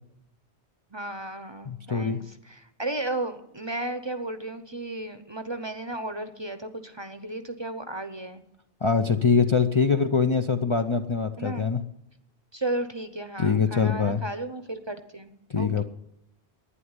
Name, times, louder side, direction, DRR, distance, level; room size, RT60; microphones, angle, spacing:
voice 1, 0.9-8.4 11.4-11.7 12.5-15.8, right 2 dB, 25° right, 10 dB, 0.8 m, -34 dB
voice 2, 1.7-2.2 8.8-11.8 13.4-14.2 15.5-15.8, left 5 dB, 35° left, 5 dB, 0.6 m, -23 dB
11.5 x 9.8 x 9.6 m, 0.81 s
omnidirectional pair, 1.1 m